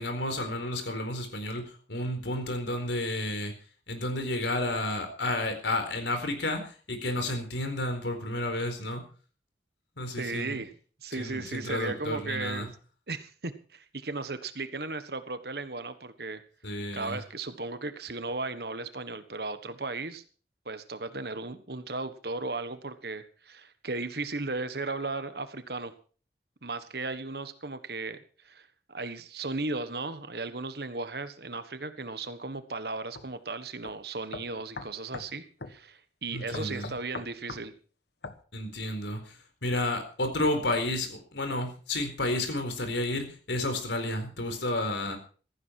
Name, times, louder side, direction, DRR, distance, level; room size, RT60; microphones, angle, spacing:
voice 1, 0.0-3.5 3.9-9.0 10.0-10.6 11.1-12.7 16.6-17.2 36.3-36.9 38.5-45.2, left 1 dB, 90° left, 7 dB, 4.3 m, -31 dB
voice 2, 10.2-10.7 11.0-12.7 13.1-16.4 16.9-20.2 20.6-25.9 26.6-37.7, right 3 dB, 60° right, 11 dB, 1.5 m, -36 dB
sound 1, 33.1-33.3 33.8-33.9 34.3-35.3 35.6-35.8 36.5-37.7 38.2-38.4, left 3 dB, 70° left, 1.3 m, -40 dB
16.0 x 14.5 x 4.7 m, 0.40 s
head